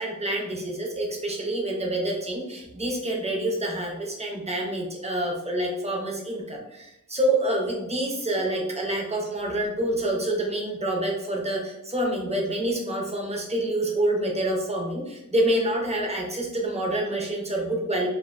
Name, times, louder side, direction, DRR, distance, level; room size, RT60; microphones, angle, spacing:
voice 1, 0.0-18.1, right 1 dB, 20° right, 0 dB, 0.6 m, -27 dB
2.4 x 2.1 x 2.4 m, 0.89 s
wide cardioid pair, 100°, 32 cm